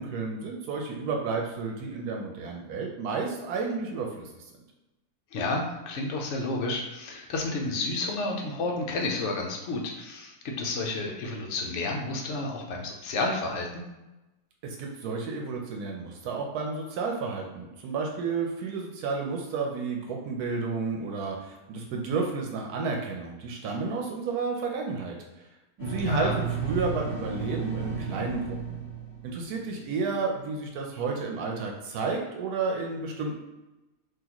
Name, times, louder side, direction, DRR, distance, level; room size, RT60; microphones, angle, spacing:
voice 1, 0.0-4.3 14.6-25.2 25.8-28.8 29.2-33.3, right 4 dB, 85° right, 1 dB, 1.1 m, -31 dB
voice 2, 5.3-13.8 26.1-26.4, left 2 dB, 60° left, 1 dB, 0.8 m, -31 dB
sound 1, 25.8-29.7, right 4 dB, 45° left, 1.4 m, -33 dB
3.9 x 2.8 x 2.9 m, 1.0 s
omnidirectional pair, 1.6 m